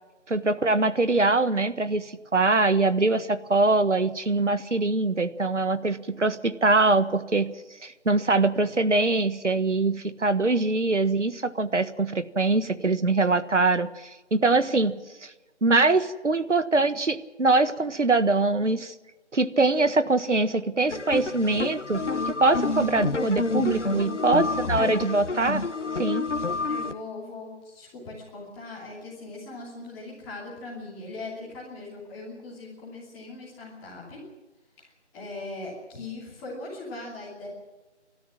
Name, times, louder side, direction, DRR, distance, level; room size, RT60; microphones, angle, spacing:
voice 1, 0.3-7.5 7.8-14.9 15.2-15.3 15.6-18.9 19.3-25.6 26.0-26.3, right 3 dB, 80° right, 13 dB, 1.6 m, -23 dB
sound 1, 20.9-26.9, left 3 dB, 85° left, 1.4 m, -28 dB
voice 2, 23.7-24.2 26.7-34.2 34.8-37.5, left 2 dB, 5° left, -6 dB, 2.8 m, -40 dB
29.0 x 13.0 x 7.4 m, 1.2 s
figure-of-eight pair, 170°, 35 cm